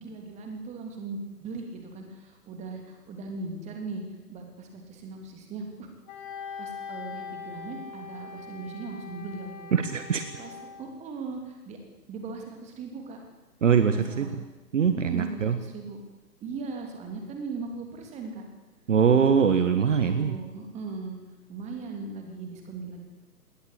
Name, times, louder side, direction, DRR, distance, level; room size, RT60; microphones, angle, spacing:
voice 1, 0.0-4.0 4.3-5.9 6.6-9.7 10.4-11.8 12.1-13.2 13.7-14.4 14.9-16.0 16.4-18.4 20.0-21.2 21.5-23.0, right 4 dB, 15° right, 3 dB, 3.2 m, -38 dB
Wind instrument woodwind instrument, 6.1-10.9, left 5 dB, 30° left, 4.3 m, -41 dB
voice 2, 9.7-10.2 13.6-14.3 14.7-15.5 18.9-20.4, right 7 dB, 50° right, 9 dB, 1.6 m, -22 dB
20.5 x 18.5 x 8.4 m, 1.1 s
figure-of-eight pair, 130°, 47 cm